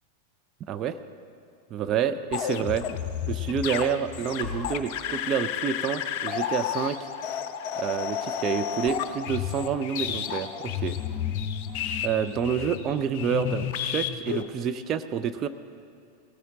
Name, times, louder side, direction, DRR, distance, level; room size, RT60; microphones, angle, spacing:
voice 1, 0.6-1.0 1.7-2.9 3.2-7.0 7.8-11.0 12.0-15.5, right 7 dB, 30° right, 10 dB, 0.5 m, -28 dB
sound 1, 2.3-14.4, left 9 dB, 45° left, 0.7 m, -31 dB
18.0 x 14.5 x 3.7 m, 2.6 s
figure-of-eight pair, 90°, 0 cm